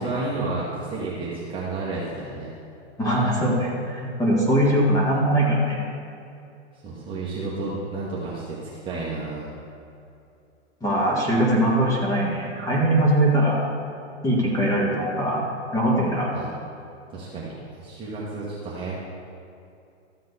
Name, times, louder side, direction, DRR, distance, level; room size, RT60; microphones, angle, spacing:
voice 1, 0.0-2.5 6.8-8.6 8.8-9.5 16.3-16.5 17.1-18.9, right 3 dB, 15° right, -7 dB, 1.4 m, -31 dB
voice 2, 3.0-5.8 10.8-13.6 14.2-15.4 15.7-16.3, right 1 dB, 10° left, -5 dB, 2.0 m, -21 dB
13.5 x 7.6 x 4.2 m, 2.6 s
hypercardioid pair, 140°, 36 cm